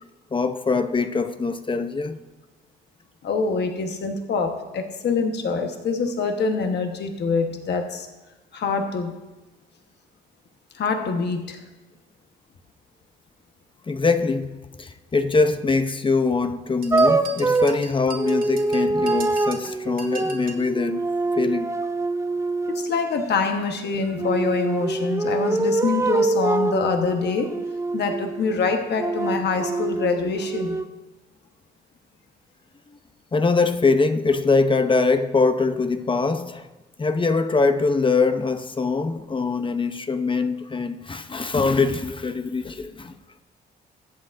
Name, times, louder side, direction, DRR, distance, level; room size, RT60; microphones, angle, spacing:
voice 1, 0.3-2.2 13.9-21.0 21.4-21.7 33.3-36.7 37.0-43.1, left 4 dB, 25° left, 0.7 m, -23 dB
voice 2, 3.2-8.1 8.5-9.1 10.7-11.6 22.7-27.5 27.9-30.8, left 4 dB, 60° left, 1.2 m, -25 dB
sound 1, 16.8-20.7, right 4 dB, 45° right, 2.0 m, -39 dB
sound 2, 16.9-23.0 24.1-28.5 29.0-30.8, right 3 dB, 15° right, 0.6 m, -24 dB
21.5 x 8.2 x 2.6 m
cardioid pair, 90°, 20 cm